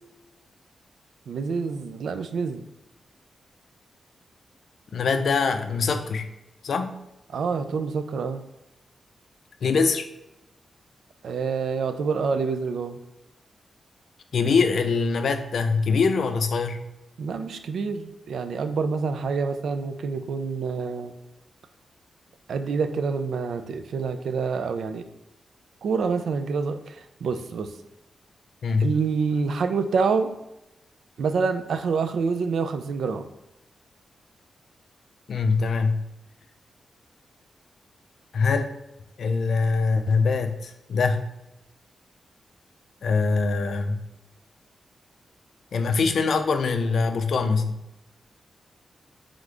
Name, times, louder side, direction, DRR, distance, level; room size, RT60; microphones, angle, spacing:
voice 1, 1.3-2.6 7.3-8.4 11.2-13.0 17.2-21.1 22.5-25.0 25.8-27.7 28.8-30.3 31.2-33.3, right 5 dB, 75° right, 9 dB, 0.4 m, -27 dB
voice 2, 4.9-6.3 6.6-6.9 9.6-10.1 14.3-16.8 28.6-28.9 35.3-36.0 38.3-38.7 39.2-41.2 43.0-44.0 45.7-47.7, left 4 dB, 60° left, 8 dB, 0.4 m, -23 dB
3.6 x 3.3 x 3.7 m, 0.90 s
wide cardioid pair, 160°, 0 cm